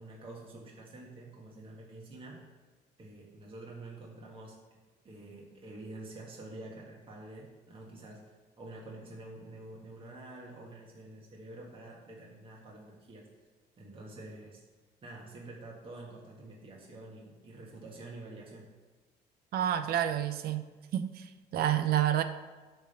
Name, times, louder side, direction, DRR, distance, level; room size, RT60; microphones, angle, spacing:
voice 1, 0.0-2.4 3.0-4.6 5.0-8.2 8.6-13.3 13.8-14.6 15.0-18.7, right 2 dB, 30° right, -3 dB, 1.8 m, -47 dB
voice 2, 19.5-20.7 20.9-22.2, right 11 dB, 65° right, 11 dB, 0.7 m, -29 dB
9.9 x 3.5 x 6.8 m, 1.3 s
cardioid pair, 110°, 17 cm